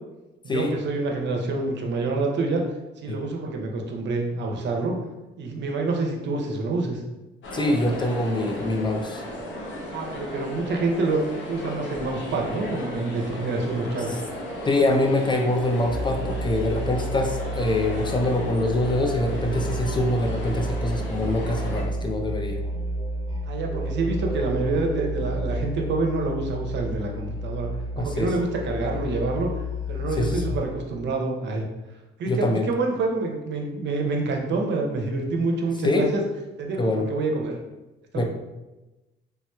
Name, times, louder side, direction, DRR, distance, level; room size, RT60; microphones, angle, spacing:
voice 1, 0.4-2.6 3.0-4.9 5.4-7.0 9.9-11.2 11.5-14.1 23.4-27.7 28.0-29.5 29.9-31.6 32.2-36.2 36.6-37.6 38.1-38.2, right 3 dB, 65° right, 2 dB, 0.6 m, -27 dB
sound 1, 7.4-21.8, equal, 75° left, 0.8 m, -35 dB
voice 2, 7.5-9.2 14.7-22.6 28.0-28.3 30.2-30.6 32.3-32.7 35.8-36.1 36.8-37.1 38.1-38.2, left 1 dB, 25° left, 3 dB, 0.4 m, -24 dB
Musical instrument, 15.8-30.8, equal, 25° right, 0.6 m, -31 dB
3.3 x 2.9 x 2.2 m, 1.1 s
cardioid pair, 90°, 20 cm